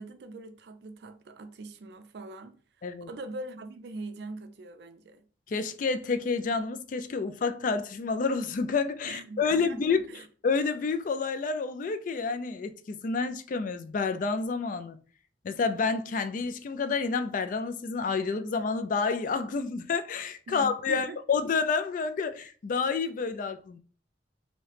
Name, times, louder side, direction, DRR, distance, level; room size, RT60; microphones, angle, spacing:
voice 1, 0.0-5.2 9.0-10.3 20.5-21.2, right 2 dB, 60° right, 0.4 m, -42 dB
voice 2, 5.5-10.0 10.4-15.0 15.4-23.8, left 4 dB, 45° left, 0.3 m, -29 dB
3.0 x 2.7 x 3.2 m
head